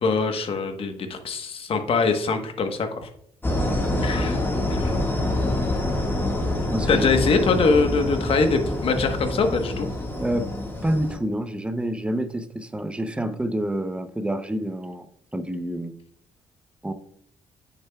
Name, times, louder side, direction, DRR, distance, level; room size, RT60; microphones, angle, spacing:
voice 1, 0.0-3.1 4.0-4.4 4.7-4.9 6.9-9.9, left 4 dB, 55° left, 6 dB, 1.2 m, -23 dB
sound 1, 3.4-11.2, left 1 dB, 20° left, 1.7 m, -26 dB
voice 2, 3.6-4.0 6.7-7.0 10.1-10.5 10.8-15.1 15.3-15.9 16.8-16.9, right 1 dB, 10° right, 9 dB, 0.6 m, -28 dB
8.7 x 6.8 x 2.3 m, 0.69 s
cardioid pair, 100°, 12 cm